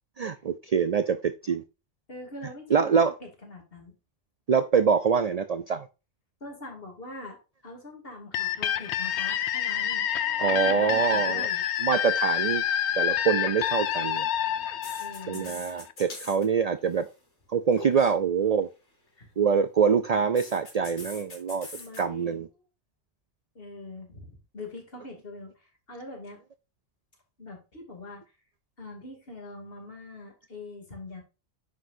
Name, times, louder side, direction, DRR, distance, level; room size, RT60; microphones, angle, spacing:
voice 1, 0.2-1.6 2.7-3.1 4.5-5.9 10.4-11.5 11.8-12.6 13.0-14.3 15.3-17.1 17.5-18.7 19.4-21.7 22.0-22.5, right 6 dB, 55° right, 12 dB, 0.4 m, -25 dB
voice 2, 2.1-4.0 6.4-7.4 7.6-10.1 10.5-11.6 15.0-15.5 19.2-19.3 21.7-22.4 23.5-26.4 27.4-28.2 28.8-31.2, left 2 dB, 55° left, 1 dB, 2.8 m, -43 dB
sound 1, 8.3-15.9, left 10 dB, 75° left, 0.9 m, -28 dB
sound 2, 13.7-13.9 14.8-16.4 16.7-17.1 17.7-18.1 20.3-22.0, left 2 dB, 90° left, 3.1 m, -43 dB
9.5 x 6.1 x 2.6 m, 0.30 s
omnidirectional pair, 1.2 m